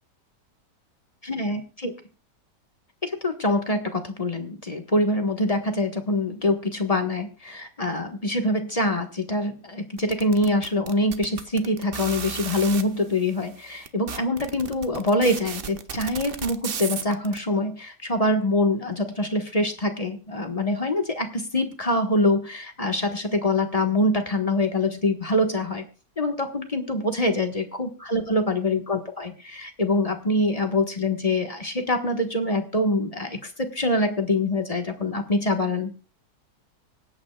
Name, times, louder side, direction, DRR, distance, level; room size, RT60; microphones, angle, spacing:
voice 1, 1.2-1.9 3.0-25.8 26.2-36.0, left 1 dB, 20° left, 5 dB, 1.3 m, -25 dB
sound 1, 10.0-12.8 13.5-13.6 13.8-17.4, right 7 dB, 45° right, 0.7 m, -34 dB
25.0 x 8.8 x 2.3 m, 0.35 s
omnidirectional pair, 1.9 m